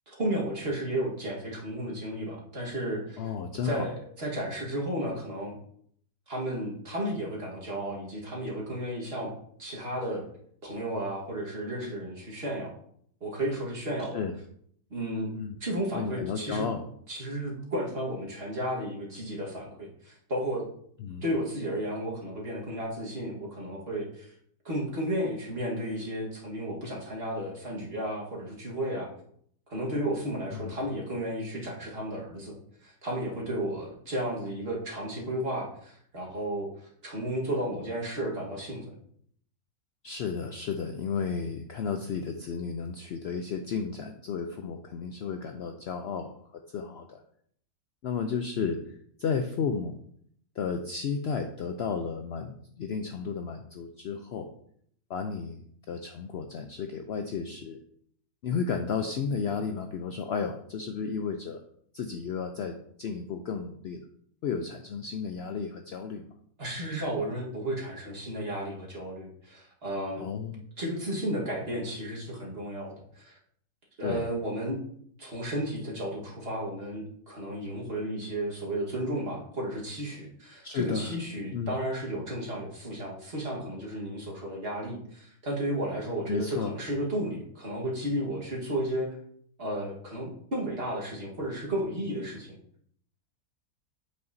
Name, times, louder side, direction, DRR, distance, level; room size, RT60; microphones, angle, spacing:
voice 1, 0.1-3.3 3.6-5.6 6.3-9.3 9.6-10.2 10.6-12.7 13.2-14.2 14.9-15.3 15.6-16.7 17.1-20.7 21.2-24.3 24.6-29.1 29.7-32.5 32.8-38.9 66.6-70.3 70.8-73.4 74.0-74.8 75.2-89.2 89.6-92.6, right 1 dB, 40° right, -3 dB, 1.7 m, -33 dB
voice 2, 3.2-3.9 14.1-14.3 15.3-15.6 15.9-16.8 21.0-21.2 30.5-30.7 40.0-46.4 46.7-47.2 48.0-48.8 49.2-50.0 50.6-54.5 55.1-55.6 55.9-57.8 58.4-61.6 61.9-64.1 64.4-66.3 70.2-70.7 74.0-74.3 80.6-81.1 81.5-81.7 86.3-86.7, left 5 dB, 85° left, 5 dB, 0.5 m, -33 dB
7.6 x 5.6 x 2.6 m, 0.65 s
omnidirectional pair, 1.7 m